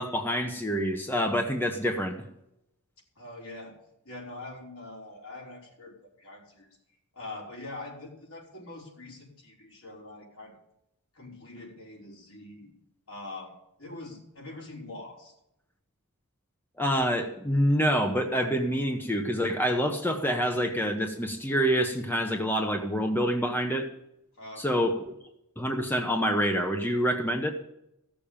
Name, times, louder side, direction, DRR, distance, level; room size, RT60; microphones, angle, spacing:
voice 1, 0.0-2.1 16.8-23.9 24.6-25.1 25.6-27.5, equal, 10° left, 4 dB, 1.0 m, -27 dB
voice 2, 3.2-3.8 4.0-6.7 7.1-10.6 11.1-12.7 13.1-13.5 13.8-15.3 24.4-24.9, left 2 dB, 70° left, -3 dB, 5.3 m, -43 dB
15.0 x 7.0 x 8.8 m, 0.82 s
head